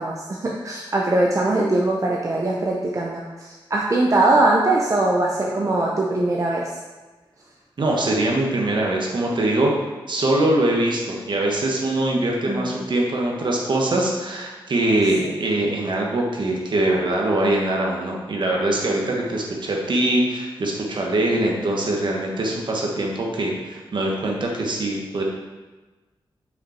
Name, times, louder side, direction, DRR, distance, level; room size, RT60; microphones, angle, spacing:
voice 1, 0.0-6.8 12.5-12.7 15.2-15.3, right 2 dB, 35° right, -2 dB, 0.7 m, -21 dB
voice 2, 7.8-9.7 10.1-25.2, right 1 dB, 60° right, -1 dB, 1.3 m, -22 dB
6.0 x 5.2 x 4.3 m, 1.2 s
wide cardioid pair, 120°, 9 cm